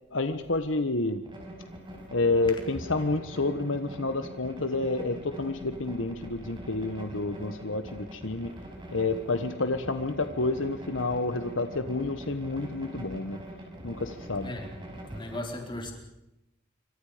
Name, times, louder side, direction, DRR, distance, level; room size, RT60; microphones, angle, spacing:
voice 1, 0.1-1.2 2.1-8.5 8.9-13.4 13.8-14.5, left 2 dB, 70° left, 1.4 m, -29 dB
sound 1, 1.2-15.4, right 1 dB, 25° right, 5.8 m, -44 dB
voice 2, 15.0-15.9, left 1 dB, 25° left, 4.4 m, -37 dB
27.0 x 25.5 x 5.2 m
head